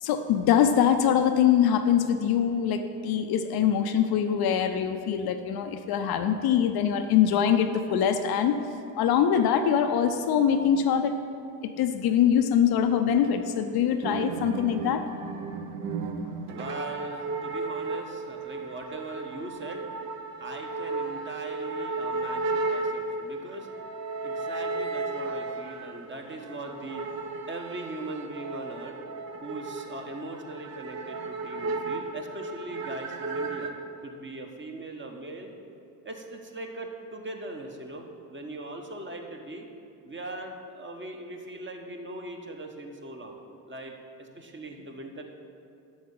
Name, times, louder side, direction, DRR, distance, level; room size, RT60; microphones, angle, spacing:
voice 1, 0.0-8.6 9.0-11.1 11.6-15.0, left 8 dB, 50° left, 7 dB, 0.6 m, -23 dB
sound 1, 14.0-33.7, right 3 dB, 50° right, 0.9 m, -34 dB
voice 2, 16.5-19.9 20.4-29.0 29.4-33.7 34.0-35.5 36.0-39.6 40.0-43.4 43.7-45.2, right 2 dB, 25° right, 3 dB, 1.2 m, -40 dB
7.8 x 6.5 x 5.6 m, 2.5 s
hypercardioid pair, 55°, 48 cm